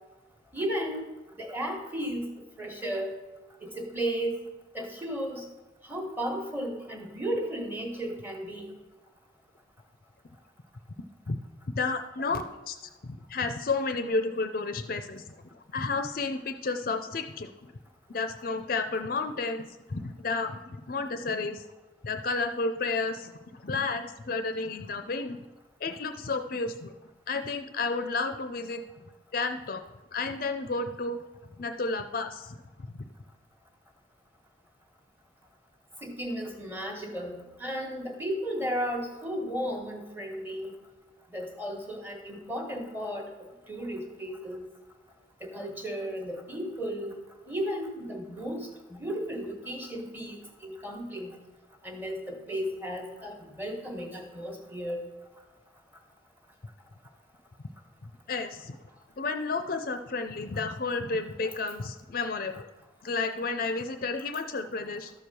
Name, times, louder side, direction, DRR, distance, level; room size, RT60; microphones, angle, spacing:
voice 1, 0.5-1.0 1.4-2.3 2.6-3.1 3.6-4.4 4.7-5.4 5.8-8.7 36.0-40.7 41.3-44.6 45.4-47.1 47.5-51.3 51.8-55.0, equal, 10° right, 2 dB, 1.3 m, -34 dB
voice 2, 11.7-12.8 13.0-17.5 18.1-21.7 22.0-25.4 25.8-26.9 27.3-29.1 29.3-29.8 30.1-31.2 31.6-32.5 58.0-58.8 59.2-62.7 63.0-65.1, left 3 dB, 50° left, 8 dB, 0.5 m, -31 dB
12.5 x 4.7 x 6.8 m, 1.1 s
head